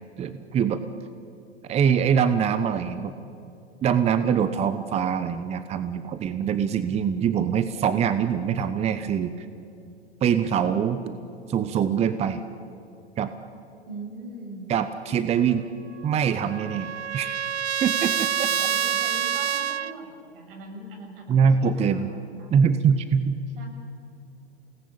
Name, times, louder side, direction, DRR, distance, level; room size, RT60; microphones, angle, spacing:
voice 1, 0.2-0.8 1.7-3.1 3.8-9.5 10.2-11.0 11.5-12.4 13.2-13.3 14.7-15.6 16.0-17.3 17.8-18.7 21.3-22.1 22.5-23.4, right 7 dB, 20° right, 11 dB, 0.9 m, -23 dB
voice 2, 13.9-14.7 18.4-22.5 23.5-23.7, right 2 dB, 55° right, 1 dB, 7.3 m, -41 dB
Trumpet, 16.0-19.9, right 8 dB, 85° right, 0.7 m, -27 dB
28.5 x 19.0 x 8.8 m, 2.6 s
figure-of-eight pair, 105°, 33 cm